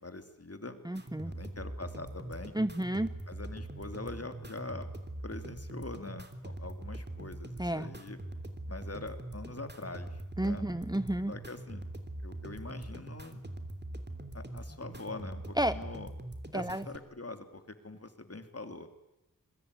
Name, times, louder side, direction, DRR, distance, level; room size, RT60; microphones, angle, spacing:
voice 1, 0.0-0.8 1.2-2.5 3.3-4.9 5.2-8.2 8.7-10.6 11.3-11.8 12.2-13.4 14.3-16.1 16.5-18.9, left 3 dB, 45° left, 8 dB, 2.9 m, -43 dB
voice 2, 0.8-1.3 2.5-3.1 7.6-7.9 10.4-11.3 15.6-15.8 16.5-16.8, right 1 dB, 10° right, 12 dB, 0.9 m, -31 dB
sound 1, 0.9-17.0, right 1 dB, 30° right, 3.1 m, -43 dB
26.0 x 22.5 x 9.8 m, 0.90 s
wide cardioid pair, 70°, 33 cm